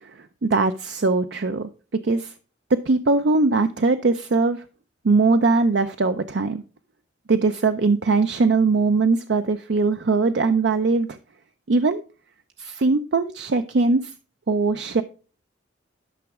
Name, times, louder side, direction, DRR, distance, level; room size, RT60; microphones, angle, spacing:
voice 1, 0.0-1.7 2.0-2.3 2.7-4.6 5.0-6.6 7.3-11.2 11.7-12.0 12.6-14.1 14.5-15.0, right 3 dB, 65° right, 9 dB, 0.5 m, -21 dB
11.5 x 6.1 x 3.6 m, 0.36 s
head